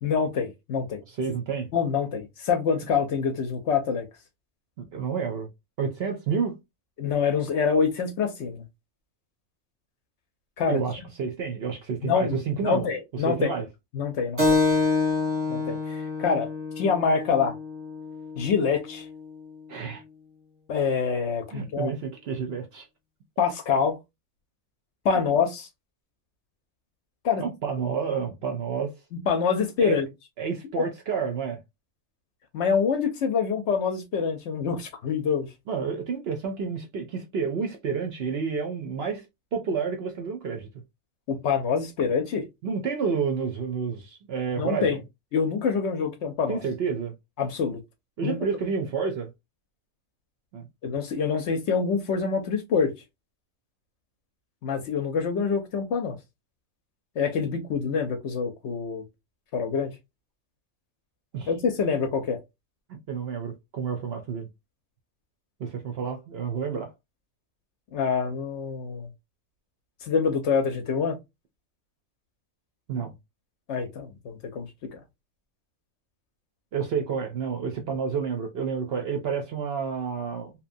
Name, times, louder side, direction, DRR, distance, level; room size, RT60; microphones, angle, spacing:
voice 1, 0.0-1.0 1.7-4.1 7.0-8.6 10.6-10.8 12.0-13.5 13.9-14.6 15.5-16.5 16.8-17.5 18.4-19.1 20.7-21.9 23.4-24.0 25.0-25.7 27.2-27.4 29.3-30.1 30.8-30.9 32.5-35.5 41.3-42.4 44.6-45.0 45.3-46.6 47.4-47.8 48.2-48.4 50.8-52.9 54.6-56.2 57.2-59.0 59.5-59.9 61.5-62.4 67.9-69.1 70.0-71.2 73.7-74.7 74.9-75.0, left 6 dB, 65° left, 0.8 m, -26 dB
voice 2, 1.1-1.7 4.8-5.5 5.8-6.6 10.7-12.9 13.1-13.7 19.7-20.0 21.5-22.9 25.1-25.2 27.4-28.9 29.8-30.0 30.4-31.6 35.7-39.2 39.5-40.7 42.6-45.0 46.5-47.1 48.2-49.3 50.5-50.7 61.3-61.5 62.9-64.5 65.6-66.9 72.9-73.1 76.7-80.5, right 6 dB, 60° right, 0.7 m, -30 dB
Keyboard (musical), 14.4-19.5, left 3 dB, 10° right, 0.9 m, -27 dB
2.8 x 2.2 x 2.5 m
omnidirectional pair, 1.4 m